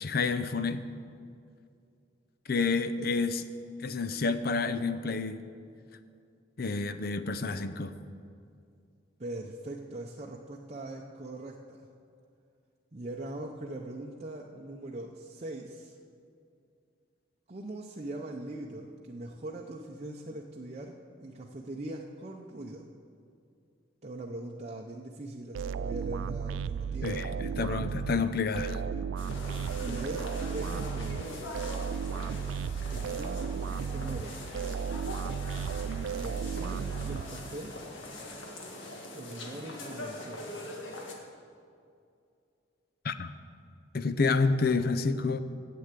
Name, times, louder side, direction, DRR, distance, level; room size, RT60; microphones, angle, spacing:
voice 1, 0.0-0.8 2.5-3.4 3.8-5.4 6.6-7.9 27.0-28.8 43.0-43.3 43.9-45.4, left 4 dB, 50° left, 12 dB, 0.6 m, -29 dB
voice 2, 9.2-11.9 12.9-16.0 17.5-22.9 24.0-28.0 29.8-31.3 32.9-34.4 36.1-37.7 39.1-40.7, right 1 dB, 35° right, -1 dB, 0.6 m, -41 dB
sound 1, 25.5-37.8, right 6 dB, 80° right, 0.3 m, -34 dB
sound 2, 29.2-41.1, left 1 dB, 80° left, 1.7 m, -42 dB
9.8 x 7.8 x 8.3 m, 2.4 s
head